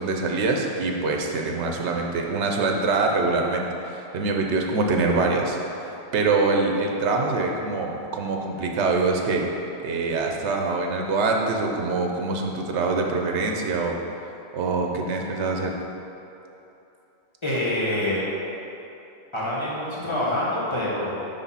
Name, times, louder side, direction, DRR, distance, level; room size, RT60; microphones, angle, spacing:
voice 1, 0.0-9.4 9.8-14.0 14.5-15.7, right 3 dB, 85° right, 2 dB, 1.0 m, -24 dB
voice 2, 17.4-18.3 19.3-21.3, left 1 dB, 25° left, -8 dB, 1.4 m, -26 dB
6.3 x 3.5 x 5.6 m, 2.9 s
omnidirectional pair, 1.1 m